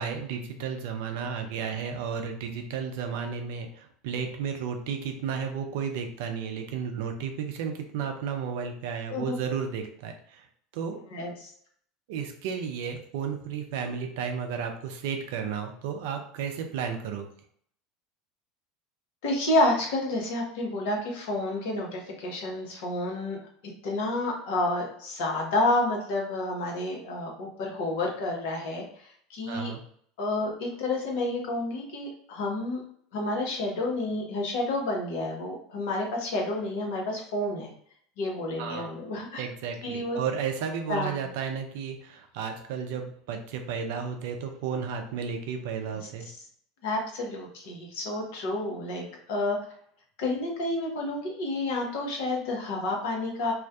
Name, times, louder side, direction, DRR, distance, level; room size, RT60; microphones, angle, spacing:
voice 1, 0.0-10.4 10.7-11.0 12.1-17.3 29.5-29.8 38.6-38.9 39.4-46.3, right 6 dB, 60° right, 4 dB, 0.4 m, -33 dB
voice 2, 11.1-11.5 19.2-23.4 23.8-28.8 29.3-29.7 30.2-32.8 33.1-37.7 38.2-39.4 39.8-40.2 40.9-41.2 45.9-46.0 46.8-49.6 50.2-53.5, left 2 dB, 60° left, -1 dB, 0.7 m, -29 dB
2.4 x 2.1 x 2.4 m, 0.63 s
figure-of-eight pair, 75°, 0 cm